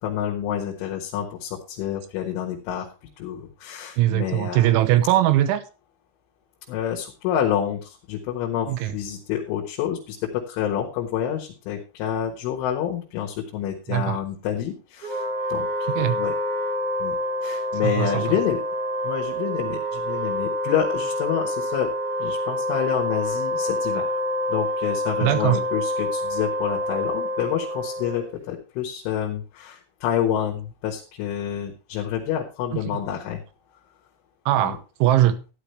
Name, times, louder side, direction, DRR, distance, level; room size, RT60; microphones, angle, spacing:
voice 1, 0.0-2.9 3.2-4.7 6.7-15.2 15.5-15.9 16.1-16.3 17.0-18.6 19.0-24.2 24.5-33.4 34.6-34.8, left 10 dB, 85° left, 3.9 m, -28 dB
voice 2, 4.0-5.6 8.7-9.0 13.9-14.2 16.0-16.2 17.8-18.2 25.2-25.6 32.7-33.0 34.5-35.4, right 13 dB, 85° right, 3.3 m, -21 dB
Wind instrument woodwind instrument, 15.0-28.4, equal, 40° right, 2.5 m, -27 dB
13.0 x 10.5 x 3.2 m
omnidirectional pair, 5.5 m